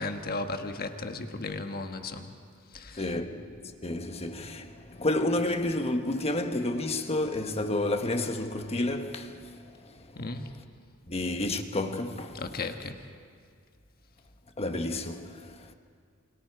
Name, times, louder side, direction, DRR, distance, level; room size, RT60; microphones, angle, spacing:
voice 1, 0.0-2.3 2.7-3.0 10.1-10.5 12.3-13.0, left 3 dB, 45° left, 1.4 m, -35 dB
voice 2, 3.0-3.4 3.8-9.5 9.8-9.9 11.1-12.6 14.6-15.7, left 1 dB, 30° left, 1.3 m, -30 dB
28.0 x 27.5 x 4.7 m
head